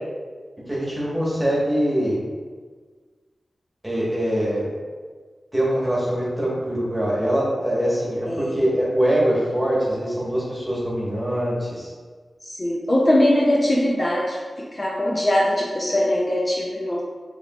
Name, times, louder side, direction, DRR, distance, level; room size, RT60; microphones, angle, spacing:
voice 1, 0.7-2.2 3.8-4.7 5.5-11.9, equal, 10° right, -6 dB, 1.4 m, -23 dB
voice 2, 8.2-8.6 12.5-14.4 14.7-17.0, left 1 dB, 30° left, -3 dB, 0.5 m, -21 dB
4.9 x 3.2 x 2.4 m, 1.5 s
wide cardioid pair, 70°, 0 cm